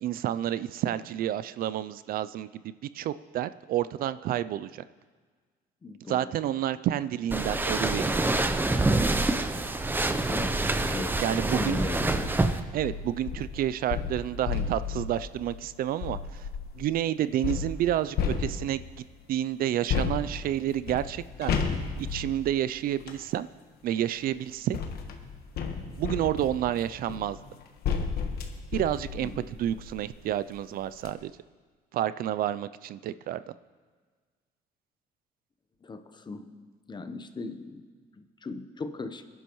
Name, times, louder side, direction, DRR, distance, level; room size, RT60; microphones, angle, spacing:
voice 1, 0.0-4.8 6.1-8.3 11.2-11.8 12.7-16.5 16.7-18.8 19.3-21.6 22.1-23.5 23.8-24.8 26.0-27.4 28.7-29.3 29.6-31.3 31.9-33.4, right 12 dB, 60° right, 15 dB, 0.4 m, -29 dB
voice 2, 5.8-6.3 10.1-12.3 29.2-29.5 35.8-36.5 36.9-37.8 38.2-39.2, left 3 dB, 25° left, 9 dB, 0.9 m, -38 dB
sound 1, 7.3-12.6, right 2 dB, 10° right, 0.7 m, -26 dB
sound 2, 12.1-12.3 12.8-16.8 17.4-19.0 19.9-23.3 24.2-30.1 30.6-30.7 30.9-31.1, left 6 dB, 65° left, 1.3 m, -33 dB
21.5 x 11.0 x 3.1 m, 1.5 s
cardioid pair, 110°, 17 cm